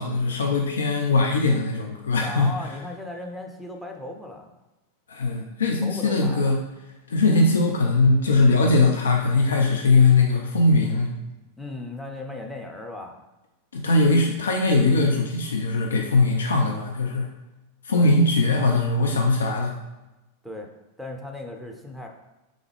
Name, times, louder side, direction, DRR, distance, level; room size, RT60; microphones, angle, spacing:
voice 1, 0.0-2.5 5.1-6.6 7.1-11.1 13.7-17.3 17.8-19.7, left 3 dB, 70° left, 1 dB, 0.5 m, -20 dB
voice 2, 2.2-4.5 5.8-6.5 11.6-13.2 17.9-18.2 20.4-20.7 21.0-22.1, left 2 dB, ahead, 2 dB, 0.6 m, -36 dB
3.6 x 3.5 x 3.4 m, 1.0 s
figure-of-eight pair, 90°, 0 cm